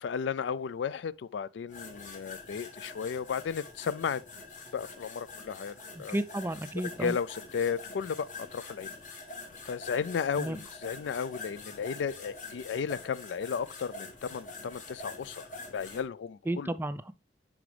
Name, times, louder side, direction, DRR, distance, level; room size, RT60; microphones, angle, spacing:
voice 1, 0.0-4.2 4.7-6.2 7.0-8.9 9.7-15.4 15.7-16.7, left 6 dB, 80° left, 0.3 m, -34 dB
sound 1, 1.7-16.0, left 3 dB, 45° left, 1.5 m, -45 dB
voice 2, 6.0-7.1 10.4-10.6 16.5-17.1, right 1 dB, 10° right, 0.3 m, -33 dB
9.6 x 5.0 x 3.3 m
head